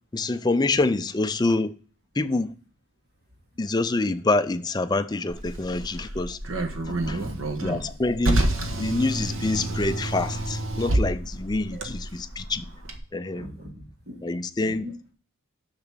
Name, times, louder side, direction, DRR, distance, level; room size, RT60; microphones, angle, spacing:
voice 1, 0.1-1.7 2.2-2.5 3.6-6.4 7.1-7.2 7.6-8.5 8.8-12.7 13.1-13.5 14.2-14.9, left 2 dB, 20° left, 0.4 m, -26 dB
Car, 5.3-13.0, right 1 dB, 70° right, 1.2 m, -29 dB
voice 2, 6.9-7.5 11.7-11.9 13.3-14.3 14.6-14.9, equal, 45° right, 2.8 m, -40 dB
6.8 x 6.1 x 6.2 m
head